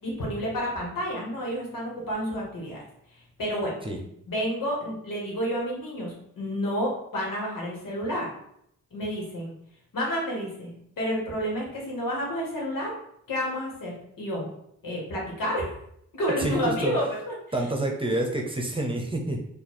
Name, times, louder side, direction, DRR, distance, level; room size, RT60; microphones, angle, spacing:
voice 1, 0.0-2.8 3.4-3.7 4.3-8.3 8.9-9.5 9.9-12.9 13.3-14.5 14.8-15.7 16.1-17.3 18.8-18.9, equal, 80° left, -2 dB, 1.8 m, -30 dB
voice 2, 16.4-16.9 17.5-19.4, right 1 dB, 15° right, 1 dB, 0.8 m, -28 dB
4.4 x 2.6 x 4.3 m, 0.74 s
cardioid pair, 95°, 33 cm